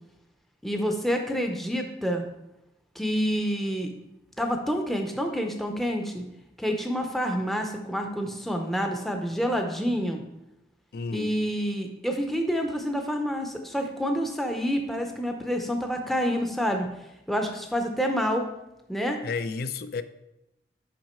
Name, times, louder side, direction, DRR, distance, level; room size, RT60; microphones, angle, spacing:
voice 1, 0.6-2.2 3.0-3.9 4.4-6.2 6.6-10.2 11.1-16.9 17.3-18.5 18.9-19.2, equal, ahead, 3 dB, 0.6 m, -28 dB
voice 2, 10.9-11.4 19.2-20.0, left 4 dB, 60° left, 12 dB, 0.4 m, -31 dB
6.0 x 5.5 x 4.3 m, 0.89 s
head